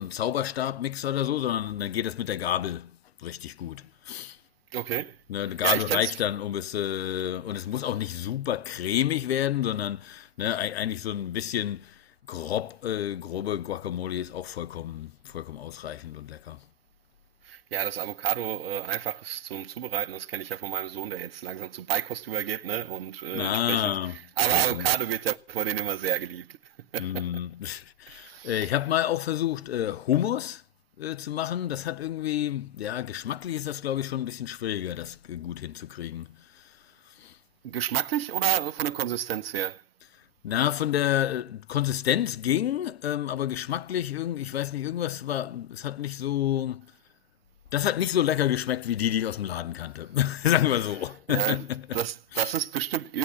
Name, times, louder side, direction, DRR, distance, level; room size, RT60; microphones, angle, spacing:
voice 1, 0.0-2.9 3.2-4.4 5.3-12.0 12.3-16.6 23.3-24.9 27.0-30.6 31.0-36.3 37.2-37.4 40.4-46.9 47.7-52.1 52.3-52.5, left 11 dB, 65° left, 0.6 m, -29 dB
voice 2, 4.7-5.2 5.6-6.2 17.4-26.6 26.9-27.3 28.1-28.7 37.6-39.8 51.3-51.6 51.9-53.2, right 10 dB, 60° right, 0.8 m, -29 dB
16.5 x 9.6 x 7.3 m
figure-of-eight pair, 105°, 34 cm